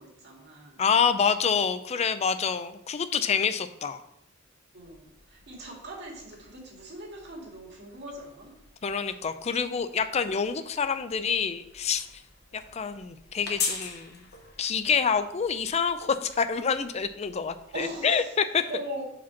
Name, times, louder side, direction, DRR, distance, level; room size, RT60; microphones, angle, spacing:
voice 1, 0.0-0.8 4.7-8.5 17.7-18.3 18.7-19.0, right 1 dB, 55° right, -2 dB, 2.0 m, -40 dB
voice 2, 0.8-4.0 8.8-12.1 12.5-14.2 14.6-18.6, left 6 dB, 30° left, 10 dB, 0.4 m, -27 dB
sound 1, 4.8-18.2, left 5 dB, 55° left, 1.1 m, -43 dB
5.0 x 4.3 x 5.7 m, 0.78 s
head